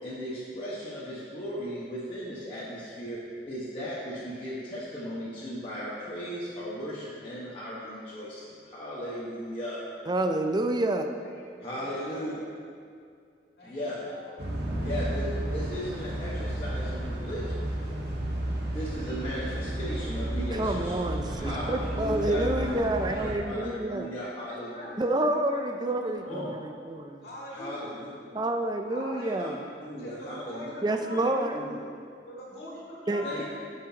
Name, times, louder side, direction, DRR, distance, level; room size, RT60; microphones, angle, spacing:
voice 1, 0.0-3.2 3.5-9.8 11.6-12.4 13.6-14.0 14.8-17.6 18.6-21.6 21.9-22.4 23.1-24.9 26.3-26.5 27.5-28.1 29.2-29.5 29.8-30.7 31.5-31.8 33.2-33.4, equal, 30° left, -10 dB, 1.3 m, -37 dB
voice 2, 10.1-11.1 20.5-24.1 25.0-27.3 28.3-29.6 30.8-31.6 33.1-33.4, right 1 dB, 25° right, 5 dB, 0.4 m, -28 dB
voice 3, 11.2-12.4 13.6-14.4 21.5-24.9 25.4-26.7 27.2-27.9 28.9-29.6 30.0-31.4 32.2-33.4, left 1 dB, 55° left, -6 dB, 2.3 m, -43 dB
sound 1, 14.4-23.4, right 1 dB, 60° right, 1.5 m, -32 dB
15.0 x 6.2 x 2.9 m, 2.3 s
head